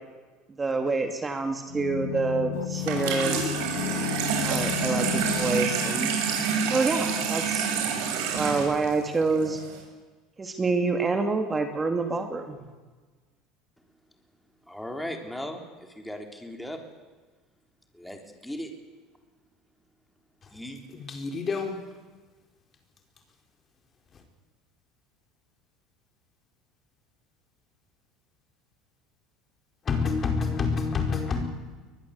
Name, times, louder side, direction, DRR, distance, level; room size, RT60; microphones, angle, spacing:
voice 1, 0.6-3.4 4.4-6.1 6.7-7.7 8.3-9.6 10.4-12.6, right 3 dB, 20° right, 2.5 m, -27 dB
sound 1, 1.7-7.4 7.6-7.7, left 10 dB, 90° left, 1.5 m, -34 dB
Water tap faucet / Sink (filling or washing), 2.8-9.8, right 6 dB, 80° right, 7.5 m, -28 dB
voice 2, 14.7-16.8 17.9-18.7 20.5-20.8, equal, 5° left, 3.7 m, -37 dB
voice 3, 20.9-21.8 29.8-31.4, left 5 dB, 30° left, 4.8 m, -27 dB
23.0 x 20.5 x 8.3 m
supercardioid pair, 115°, 0 cm